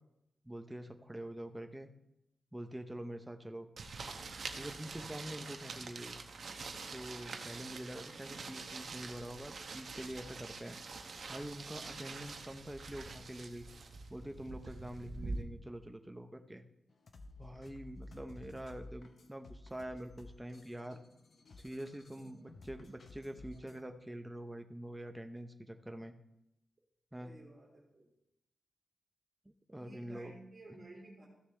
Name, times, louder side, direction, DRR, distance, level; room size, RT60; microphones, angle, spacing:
voice 1, 0.4-1.9 2.5-3.7 4.6-6.2 6.9-10.8 11.3-13.7 14.1-16.6 17.4-21.0 21.6-26.1 27.1-27.3 29.5-30.3 30.7-30.8, right 1 dB, 5° right, 6 dB, 0.7 m, -45 dB
sound 1, 3.8-15.4, right 3 dB, 50° right, 0.8 m, -45 dB
sound 2, 16.9-23.8, left 2 dB, 50° left, 0.8 m, -54 dB
voice 2, 27.2-28.1 29.7-31.2, right 2 dB, 20° right, -6 dB, 2.6 m, -53 dB
14.5 x 6.6 x 3.3 m, 0.85 s
wide cardioid pair, 160°, 0 cm